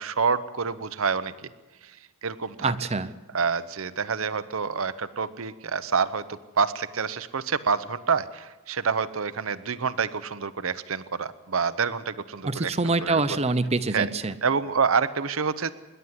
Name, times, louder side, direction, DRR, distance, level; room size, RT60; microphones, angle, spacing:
voice 1, 0.0-1.3 1.8-2.0 2.2-2.7 3.3-12.7 13.0-13.2 13.9-14.1 14.4-15.7, right 5 dB, 70° right, 13 dB, 0.8 m, -27 dB
voice 2, 2.6-3.1 12.4-14.3, right 3 dB, 30° right, 12 dB, 0.7 m, -25 dB
26.0 x 11.5 x 9.7 m, 1.2 s
head